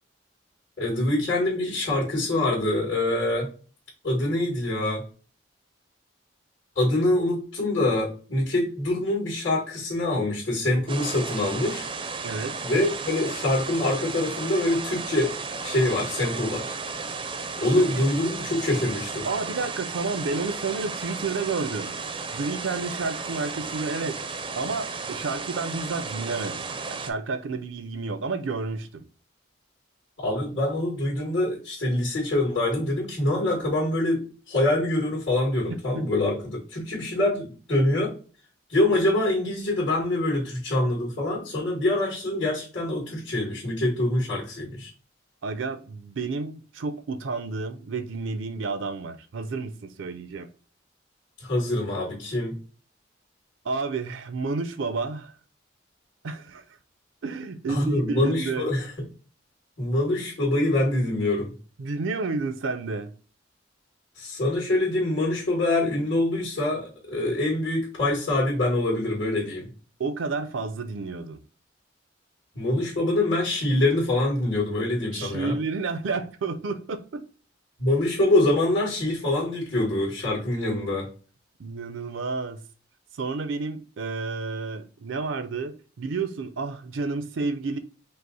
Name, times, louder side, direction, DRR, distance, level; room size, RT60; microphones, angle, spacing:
voice 1, 0.8-3.5 4.0-5.0 6.8-11.9 12.6-15.3 15.6-16.7 17.6-19.3 30.2-38.1 38.7-44.9 51.4-52.6 57.7-58.9 59.8-61.5 64.2-69.7 72.5-75.6 77.8-81.1, left 1 dB, 75° left, 2.2 m, -25 dB
sound 1, 10.9-27.1, right 4 dB, 25° right, 0.4 m, -34 dB
voice 2, 12.2-12.7 17.7-18.3 19.3-22.0 22.3-24.3 24.6-29.0 35.7-36.1 45.4-50.5 53.6-55.3 56.2-56.6 57.2-58.6 61.8-63.1 70.0-71.4 75.1-77.2 81.6-82.6 83.2-87.8, right 4 dB, 85° right, 0.5 m, -31 dB
5.4 x 2.0 x 4.0 m
head